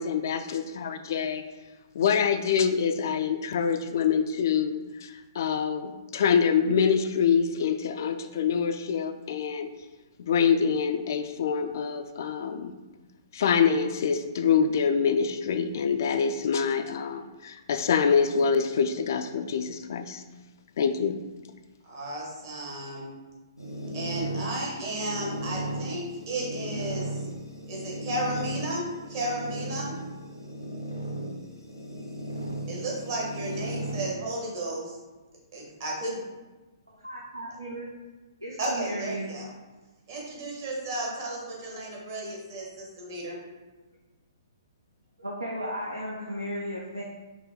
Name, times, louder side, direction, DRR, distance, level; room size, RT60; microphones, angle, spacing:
voice 1, 0.0-1.4 1.9-9.7 10.2-12.7 13.3-20.2 20.8-21.2, left 6 dB, 50° left, 8 dB, 0.3 m, -25 dB
voice 2, 21.8-23.1 23.9-27.3 27.7-29.9 32.7-35.0 35.5-36.2 38.6-39.5 40.1-43.4, right 1 dB, 40° right, -3 dB, 1.1 m, -33 dB
sound 1, 23.6-34.0, right 1 dB, 85° left, 0.9 m, -35 dB
voice 3, 36.9-37.9 38.4-39.3 45.2-47.0, equal, 85° right, -3 dB, 0.6 m, -35 dB
4.9 x 2.1 x 3.7 m, 1.2 s
figure-of-eight pair, 120°, 2 cm